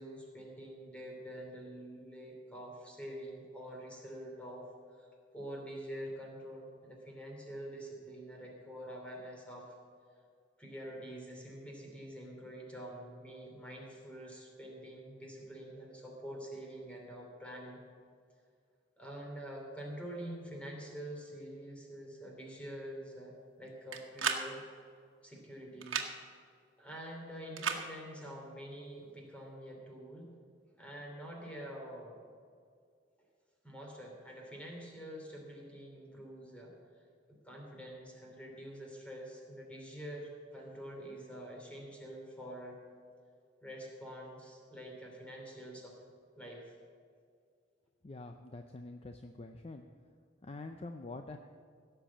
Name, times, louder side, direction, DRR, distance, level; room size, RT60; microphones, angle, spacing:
voice 1, 0.0-4.7 5.0-5.1 5.3-9.8 10.6-17.8 19.0-24.6 25.2-26.1 26.8-30.3 30.8-32.1 33.6-36.7 37.3-42.8 43.6-46.0 46.4-46.8, equal, 5° left, -1 dB, 2.9 m, -46 dB
sound 1, 23.9-24.4 25.8-26.1 27.6-27.8, right 6 dB, 90° right, 1.3 m, -33 dB
voice 2, 48.0-49.8 50.4-51.4, left 2 dB, 30° left, 6 dB, 0.5 m, -46 dB
16.5 x 6.9 x 7.5 m, 2.2 s
head